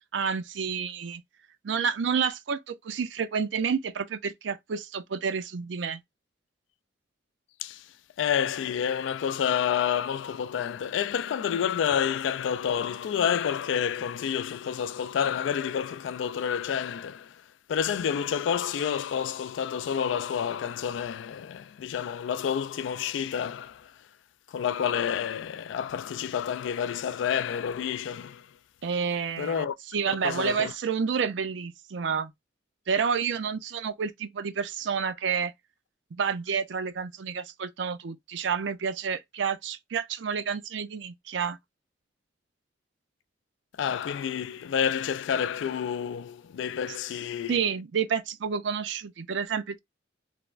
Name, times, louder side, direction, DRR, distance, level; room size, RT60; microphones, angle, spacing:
voice 1, 0.1-1.2 1.6-6.0 28.8-29.7 29.9-32.3 32.9-35.5 36.1-41.6 47.5-49.8, right 6 dB, 75° right, 0.4 m, -29 dB
voice 2, 7.6-7.9 8.2-24.0 24.5-28.5 29.4-29.7 30.1-30.7 43.8-47.6, left 8 dB, 80° left, 0.3 m, -29 dB
3.2 x 2.1 x 2.4 m
head